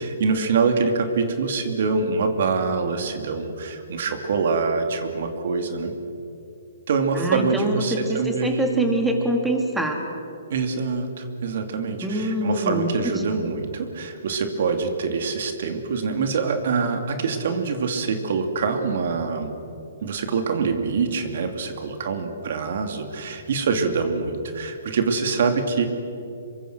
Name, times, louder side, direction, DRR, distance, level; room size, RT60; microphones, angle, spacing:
voice 1, 0.0-5.9 6.9-8.9 10.5-19.5 20.0-25.9, right 4 dB, 60° right, 6 dB, 2.8 m, -25 dB
voice 2, 7.1-10.0 12.0-13.2, right 1 dB, 5° right, 2 dB, 3.0 m, -25 dB
27.0 x 23.5 x 6.3 m, 2.7 s
hypercardioid pair, 145°, 0 cm